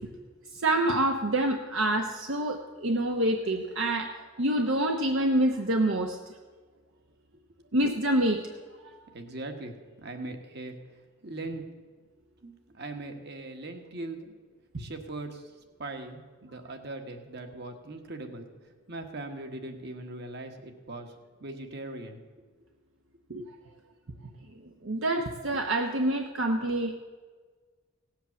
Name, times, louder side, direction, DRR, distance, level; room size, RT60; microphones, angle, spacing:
voice 1, 0.5-6.3 7.7-8.4 23.3-23.4 24.8-26.9, right 1 dB, 70° right, 3 dB, 0.9 m, -27 dB
voice 2, 9.1-10.8 11.2-11.6 12.4-14.3 14.8-15.4 15.8-18.5 18.9-21.1 21.4-22.2, right 2 dB, 55° right, 5 dB, 1.5 m, -40 dB
17.0 x 8.0 x 7.0 m, 1.5 s
head